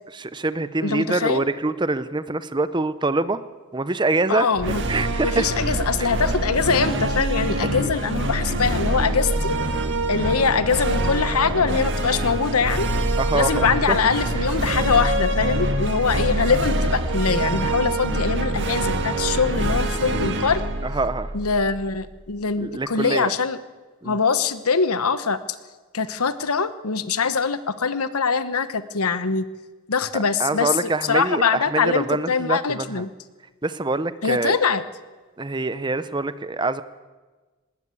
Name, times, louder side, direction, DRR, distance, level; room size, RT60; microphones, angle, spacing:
voice 1, 0.2-3.4 3.7-4.5 4.9-5.5 6.0-6.1 13.1-14.0 19.6-19.8 20.8-21.3 22.6-23.3 24.0-24.2 30.4-33.0 33.6-34.6 35.4-36.8, right 2 dB, 20° right, 14 dB, 0.6 m, -25 dB
voice 2, 0.8-1.4 4.3-4.8 5.2-9.5 10.1-12.9 13.3-20.6 21.3-23.6 24.0-25.4 25.9-29.5 29.9-30.8 31.1-33.1 34.2-34.8, left 5 dB, 85° left, 13 dB, 1.1 m, -23 dB
superhero theme, 4.5-22.0, right 1 dB, 55° right, 1.7 m, -25 dB
19.5 x 19.0 x 8.4 m, 1.3 s
head